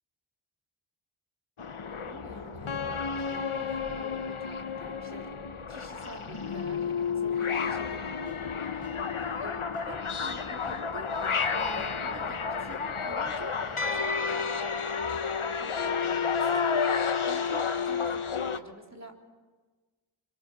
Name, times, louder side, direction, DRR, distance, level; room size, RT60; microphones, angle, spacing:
sound 1, 1.6-18.6, left 5 dB, 85° left, 1.1 m, -31 dB
voice 1, 2.0-3.0 3.3-5.3 5.7-9.0 9.4-9.6 9.9-14.6 15.6-19.2, equal, 35° right, 1 dB, 3.7 m, -47 dB
sound 2, 7.7-7.8 8.3-9.3 9.7-10.9 11.2-13.7, equal, 15° right, 6.9 m, -54 dB
25.0 x 25.0 x 6.8 m, 1.3 s
wide cardioid pair, 45°, 48 cm